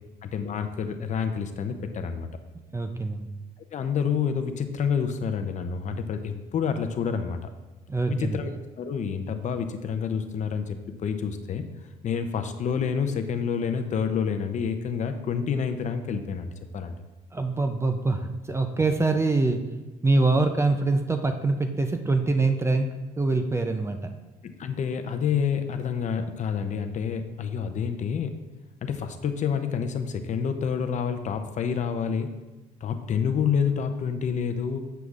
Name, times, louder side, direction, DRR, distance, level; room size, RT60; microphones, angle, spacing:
voice 1, 0.2-2.3 3.7-7.4 8.1-8.5 8.8-11.6 12.0-16.9 24.6-28.3 28.8-32.3 32.8-34.8, left 6 dB, 45° left, 8 dB, 0.6 m, -28 dB
voice 2, 2.7-3.3 7.9-8.4 17.3-19.6 20.0-24.1, right 3 dB, 15° right, 6 dB, 0.4 m, -24 dB
7.8 x 6.8 x 2.4 m, 1.2 s
cardioid pair, 110°, 17 cm